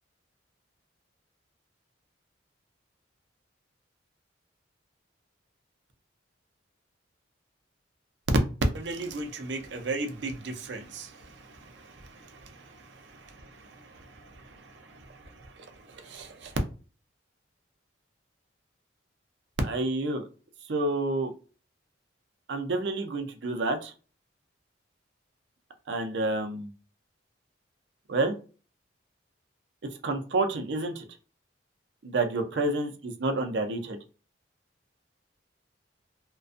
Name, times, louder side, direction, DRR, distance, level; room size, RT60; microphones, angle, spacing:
voice 1, 8.7-16.6 19.6-20.2 20.7-21.3 22.5-23.9 25.9-26.7 28.1-28.4 30.0-31.0 32.0-34.0, right 2 dB, 60° right, 6 dB, 0.5 m, -31 dB
2.4 x 2.2 x 2.5 m, 0.35 s
head